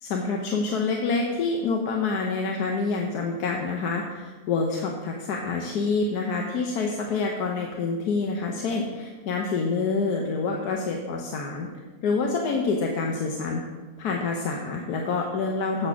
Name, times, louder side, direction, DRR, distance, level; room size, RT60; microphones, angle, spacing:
voice 1, 0.0-11.7 12.0-13.6 14.0-15.9, left 4 dB, 90° left, 1 dB, 1.3 m, -27 dB
7.9 x 6.6 x 5.9 m, 1.3 s
omnidirectional pair, 1.6 m